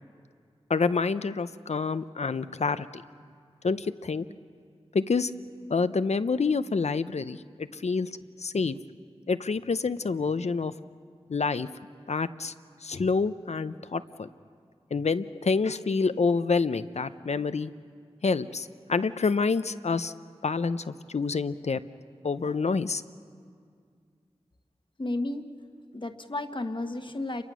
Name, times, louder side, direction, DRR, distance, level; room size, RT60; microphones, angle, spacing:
voice 1, 0.7-3.0 3.6-4.2 4.9-5.3 5.7-8.1 8.4-8.8 9.3-10.7 11.3-11.7 12.1-12.5 12.8-14.3 14.9-17.7 18.2-20.1 20.4-21.8 22.2-23.0, left 4 dB, 75° left, 13 dB, 0.6 m, -27 dB
voice 2, 25.0-25.5 25.9-27.4, left 2 dB, 45° left, 7 dB, 1.2 m, -32 dB
28.5 x 23.0 x 6.2 m, 2.2 s
wide cardioid pair, 55°, 11 cm